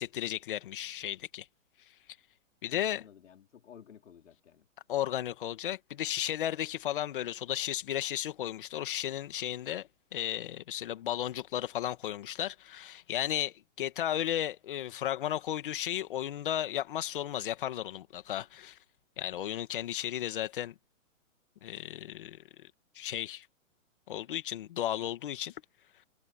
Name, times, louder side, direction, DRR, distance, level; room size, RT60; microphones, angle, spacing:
voice 1, 0.0-1.5 2.6-3.0 4.9-18.8 19.2-20.7 21.6-23.5 24.1-25.6, left 11 dB, 40° left, 2.0 m, -34 dB
voice 2, 2.7-4.7, left 8 dB, 60° left, 4.9 m, -54 dB
hypercardioid pair, 165°, 40 cm